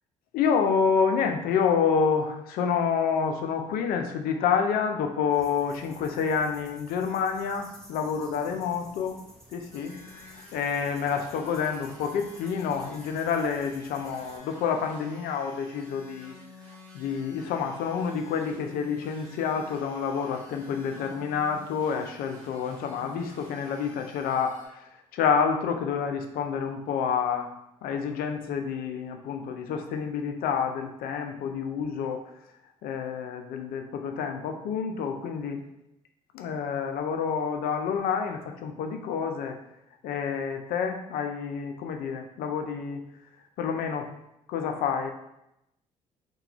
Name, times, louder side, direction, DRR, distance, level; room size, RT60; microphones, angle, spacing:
voice 1, 0.3-9.2 9.5-10.0 10.5-16.4 16.9-24.8 25.1-27.5 27.8-32.2 32.8-35.6 36.3-39.6 40.0-43.0 43.6-44.1 44.5-45.1, left 6 dB, 60° left, 5 dB, 0.4 m, -28 dB
sound 1, 5.3-14.4, equal, 5° left, 0.8 m, -52 dB
sound 2, 9.7-24.7, left 1 dB, 85° right, 0.5 m, -51 dB
2.4 x 2.2 x 2.9 m, 0.85 s
hypercardioid pair, 50°, 17 cm